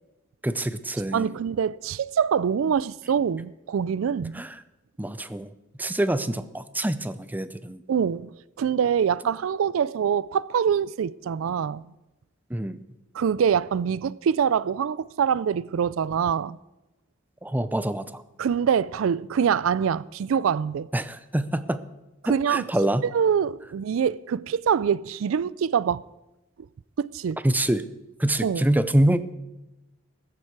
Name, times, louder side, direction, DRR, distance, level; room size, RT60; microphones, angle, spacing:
voice 1, 0.4-1.3 4.3-4.6 5.0-5.5 5.8-7.8 12.5-12.8 17.4-18.2 20.9-21.8 22.3-23.1 27.4-27.9 28.2-29.2, right 1 dB, 10° right, 0.6 m, -25 dB
voice 2, 1.1-4.4 7.9-8.3 8.6-11.9 13.1-16.6 18.4-20.9 22.3-22.6 23.1-26.0 27.0-27.4 28.4-28.6, right 7 dB, 75° right, 0.4 m, -24 dB
14.5 x 14.0 x 4.7 m
head